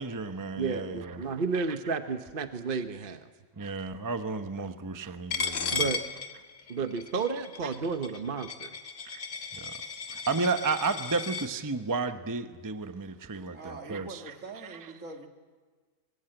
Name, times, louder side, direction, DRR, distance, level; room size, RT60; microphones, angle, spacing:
voice 1, 0.0-1.2 3.6-5.9 9.1-9.2 9.5-9.7 10.1-14.2, right 4 dB, 15° right, 0.8 m, -32 dB
voice 2, 0.6-3.3 4.6-4.7 5.7-6.0 6.7-8.7, right 4 dB, 45° right, 1.1 m, -32 dB
Coin (dropping), 5.3-11.5, left 5 dB, 65° left, 1.9 m, -35 dB
voice 3, 13.4-15.3, right 3 dB, 70° right, 2.9 m, -43 dB
25.0 x 24.0 x 7.9 m
omnidirectional pair, 1.4 m